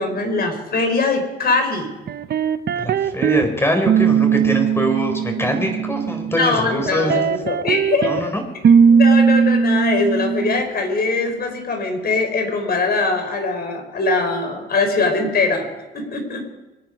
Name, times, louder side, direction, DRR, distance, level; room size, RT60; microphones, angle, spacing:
voice 1, 0.0-1.9 6.3-8.3 8.9-15.7 15.9-16.4, left 3 dB, 50° left, 4 dB, 4.8 m, -21 dB
sound 1, 2.1-3.5 3.9-6.4 6.9-8.2 8.6-10.6, right 6 dB, 55° right, 0.9 m, -18 dB
voice 2, 2.8-7.2 8.1-8.3, equal, 10° left, 4 dB, 4.5 m, -23 dB
25.0 x 9.7 x 5.4 m, 1.1 s
cardioid pair, 90°, 20 cm